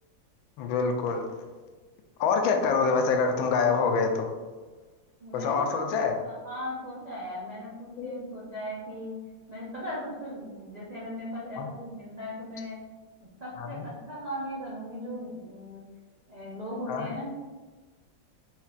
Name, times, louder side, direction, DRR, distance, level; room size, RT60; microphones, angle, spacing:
voice 1, 0.6-1.3 2.2-4.3 5.3-6.2 8.0-8.2 11.6-11.7 13.6-13.9 16.9-17.1, left 5 dB, 85° left, 4 dB, 1.4 m, -26 dB
voice 2, 5.2-5.9 6.2-9.2 9.5-12.7 13.2-15.8 16.3-17.3, equal, 55° right, -8 dB, 0.4 m, -38 dB
4.4 x 4.0 x 2.4 m, 1.3 s
omnidirectional pair, 2.1 m